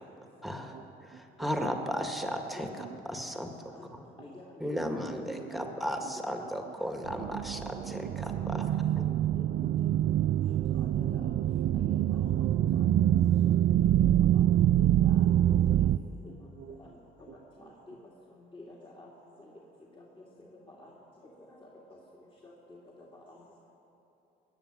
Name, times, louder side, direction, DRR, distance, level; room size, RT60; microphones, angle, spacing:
voice 1, 0.4-0.7 1.1-3.5 4.6-8.6, equal, ahead, 4 dB, 1.8 m, -35 dB
voice 2, 2.8-3.2 4.2-4.3 5.0-6.1 8.0-8.1 11.1-11.2 12.3-12.4 16.3-16.9 17.3-17.7, right 7 dB, 70° right, 6 dB, 1.2 m, -49 dB
voice 3, 4.2-4.9 5.5-5.7 6.0-7.3 7.6-8.6 9.0-9.4 10.7-11.3 11.8-12.4 12.7-13.0 13.7-14.5 14.8-15.9 16.8-16.9 17.2-18.0 18.5-19.1 19.4-19.5 19.9-20.2 20.7-20.9 21.5-21.7 22.4-22.5 23.1-23.4, left 2 dB, 25° left, -4 dB, 2.4 m, -49 dB
sound 1, 7.1-16.0, right 12 dB, 55° right, 0.4 m, -25 dB
19.5 x 7.3 x 9.9 m, 3.0 s
supercardioid pair, 80°, 21 cm